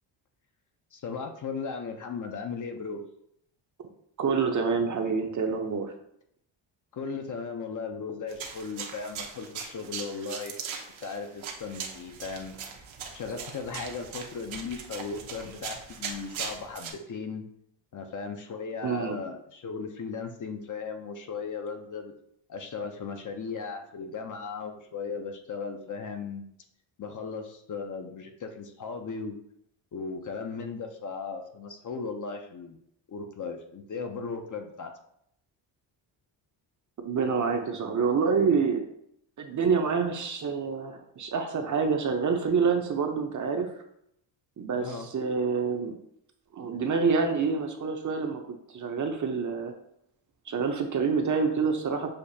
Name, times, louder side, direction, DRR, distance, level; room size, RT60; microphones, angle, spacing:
voice 1, 0.9-3.0 6.9-10.6 11.0-12.6 13.1-17.4 17.9-22.1 22.5-26.5 27.0-29.4 29.9-32.8 33.1-34.9 44.7-45.1, left 5 dB, 40° left, 5 dB, 0.6 m, -37 dB
voice 2, 4.2-5.9 18.8-19.2 37.0-38.8 39.4-43.7 44.6-46.0 46.5-48.4 48.7-49.7 50.5-52.1, right 5 dB, 40° right, 5 dB, 0.6 m, -27 dB
sound 1, 8.3-16.9, right 6 dB, 75° right, 0.8 m, -40 dB
6.5 x 2.4 x 2.7 m, 0.72 s
cardioid pair, 100°, 47 cm